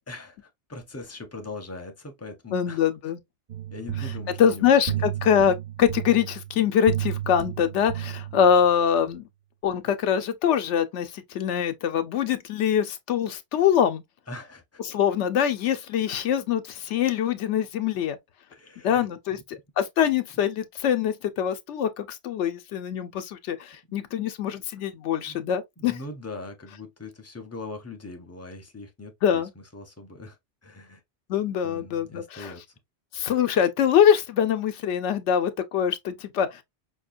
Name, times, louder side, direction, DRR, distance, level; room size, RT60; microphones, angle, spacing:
voice 1, 0.1-2.8 3.7-5.1 14.3-14.8 18.5-19.6 25.3-25.5 25.8-30.4 30.6-31.0 31.6-32.6, left 2 dB, 20° left, 0.5 m, -41 dB
voice 2, 2.5-3.2 4.4-9.3 9.6-14.0 14.9-18.2 18.8-26.0 29.2-29.5 31.3-32.5 33.1-36.6, left 8 dB, 85° left, 0.9 m, -24 dB
sound 1, 3.5-8.8, right 11 dB, 60° right, 0.5 m, -33 dB
5.2 x 2.2 x 2.5 m
omnidirectional pair, 1.2 m